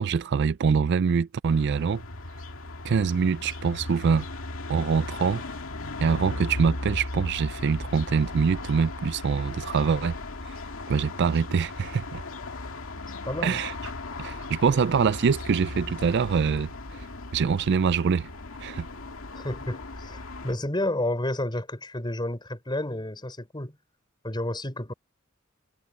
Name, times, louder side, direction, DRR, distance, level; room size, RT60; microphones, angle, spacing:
voice 1, 0.0-2.0 2.8-4.3 4.7-5.4 6.0-10.2 10.5-10.6 10.9-12.2 13.4-13.7 14.2-17.0 17.3-18.3 18.6-18.9, right 6 dB, 55° right, 0.4 m, -24 dB
sound 1, 1.5-20.5, left 2 dB, 80° left, 2.2 m, -37 dB
voice 2, 13.3-13.6 19.3-23.8 24.2-24.9, left 1 dB, 20° left, 5.3 m, -31 dB
head